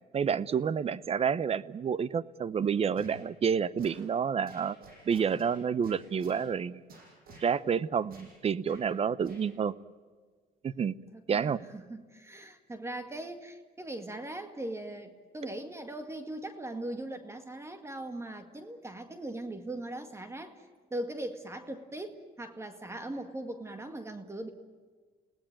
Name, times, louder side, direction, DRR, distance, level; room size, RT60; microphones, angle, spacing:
voice 1, 0.1-4.8 5.1-6.8 7.4-9.7 10.6-10.9 11.3-11.6, right 7 dB, 35° right, 18 dB, 0.8 m, -29 dB
sound 1, 2.9-3.2 3.8-4.0 4.5-5.5 5.8-6.4 6.9-7.5 8.1-8.3 8.6-8.8 9.2-9.4, right 3 dB, 60° right, 7.9 m, -51 dB
voice 2, 11.1-20.7 20.9-24.5, right 1 dB, 15° right, 8 dB, 2.0 m, -40 dB
29.5 x 18.5 x 9.1 m, 1.5 s
cardioid pair, 110°, 17 cm